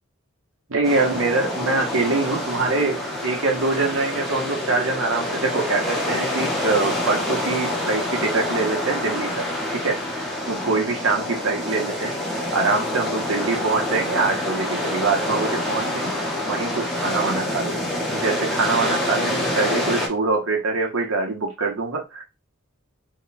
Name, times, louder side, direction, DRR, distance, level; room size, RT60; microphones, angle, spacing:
voice 1, 0.7-12.2 12.5-22.2, right 3 dB, 80° right, 1.0 m, -24 dB
sound 1, 0.8-20.1, left 1 dB, ahead, 0.7 m, -27 dB
3.0 x 2.2 x 4.0 m
head